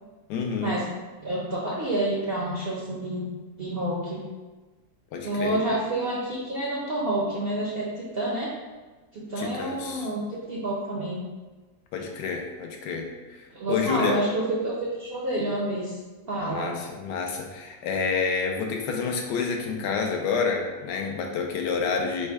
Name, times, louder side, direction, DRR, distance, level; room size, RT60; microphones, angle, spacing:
voice 1, 0.3-0.8 5.1-5.6 9.4-10.1 11.9-14.2 16.5-22.3, left 5 dB, 80° left, 2 dB, 1.2 m, -29 dB
voice 2, 1.2-3.3 3.6-4.2 5.2-8.5 9.1-11.2 13.5-16.0 16.3-16.7, right 1 dB, 60° right, -5 dB, 0.6 m, -28 dB
4.1 x 2.2 x 4.6 m, 1.3 s
omnidirectional pair, 1.8 m